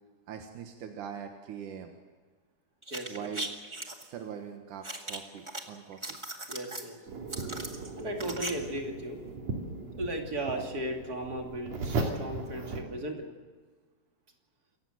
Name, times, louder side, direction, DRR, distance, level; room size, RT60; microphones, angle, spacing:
voice 1, 0.3-2.0 3.1-3.5 4.0-6.2, right 8 dB, 90° right, 4 dB, 3.0 m, -42 dB
sound 1, 2.8-4.0 4.8-5.6 5.9-6.9 7.3-8.5 8.8-8.9, right 1 dB, 15° right, 1.4 m, -38 dB
voice 2, 2.9-3.3 6.5-7.0 7.9-9.2 10.0-13.3, right 1 dB, 30° right, 2 dB, 3.1 m, -36 dB
sound 2, 7.1-12.8, right 3 dB, 60° right, 3.8 m, -37 dB
27.5 x 15.5 x 8.0 m, 1.4 s
omnidirectional pair, 3.5 m